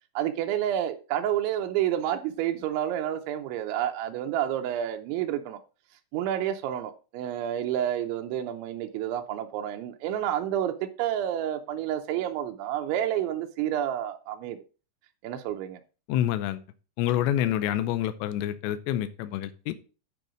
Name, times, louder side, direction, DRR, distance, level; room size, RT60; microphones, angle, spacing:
voice 1, 0.2-5.6 6.1-14.6 15.2-15.8 17.6-17.7, right 11 dB, 85° right, 3.1 m, -29 dB
voice 2, 16.1-16.6 17.0-19.7, left 12 dB, 80° left, 2.8 m, -27 dB
9.2 x 5.4 x 5.0 m
omnidirectional pair, 5.2 m